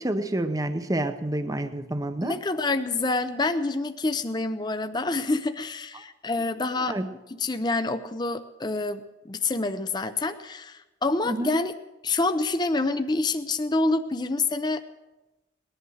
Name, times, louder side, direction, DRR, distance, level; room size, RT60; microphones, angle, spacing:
voice 1, 0.0-2.3 5.9-6.0 6.8-7.1 11.2-11.6, right 1 dB, 20° right, 9 dB, 0.7 m, -28 dB
voice 2, 2.2-7.0 7.4-11.7 12.0-14.8, left 3 dB, 20° left, 9 dB, 0.5 m, -27 dB
19.0 x 11.0 x 6.3 m, 1.0 s
head